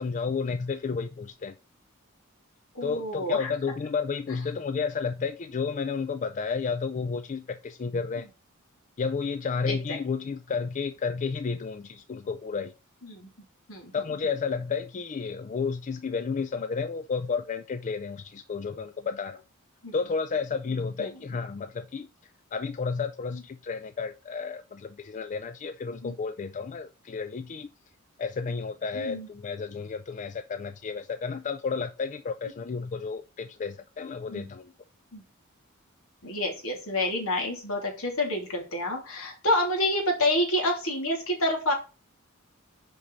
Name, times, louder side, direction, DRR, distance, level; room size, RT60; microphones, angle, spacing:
voice 1, 0.0-1.6 2.8-8.3 9.0-12.7 13.9-19.4 19.9-22.1 22.5-27.7 28.2-34.7, left 5 dB, 35° left, 0.4 m, -31 dB
voice 2, 2.7-3.5 8.1-8.2 9.7-9.8 13.0-13.3 13.7-13.9 19.8-19.9 20.7-21.1 23.3-23.4 26.0-26.1 28.4-28.5 28.9-29.3 34.3-34.5 35.1-35.2 36.2-41.7, left 1 dB, 75° left, 3.0 m, -28 dB
6.1 x 5.3 x 4.0 m
head